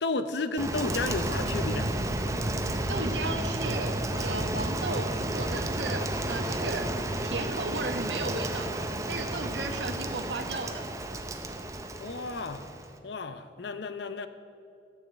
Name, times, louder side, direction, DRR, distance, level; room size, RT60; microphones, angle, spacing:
voice 1, 0.0-2.0 12.0-12.7 13.0-14.3, left 3 dB, 75° left, 11 dB, 0.7 m, -32 dB
Rain, 0.6-13.0, right 1 dB, 15° right, 0.6 m, -32 dB
voice 2, 2.9-6.9 7.2-8.8 9.1-10.8, right 2 dB, 80° right, 5 dB, 1.2 m, -35 dB
12.5 x 6.5 x 8.2 m, 2.5 s
head